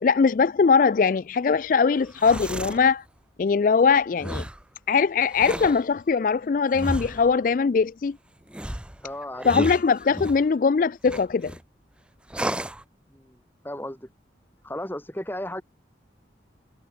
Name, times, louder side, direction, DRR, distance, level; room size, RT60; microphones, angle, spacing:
voice 1, 0.0-3.0 3.4-4.5 4.9-8.2 9.4-11.5, left 5 dB, 45° left, 0.3 m, -21 dB
sound 1, 2.0-2.8 4.2-4.6 5.3-5.8 6.7-7.3 8.5-10.4 11.1-11.6 12.3-12.8, right 1 dB, 5° right, 0.6 m, -32 dB
voice 2, 9.0-9.5 13.1-13.4 13.6-14.1 14.6-15.6, left 1 dB, 10° left, 2.2 m, -34 dB
head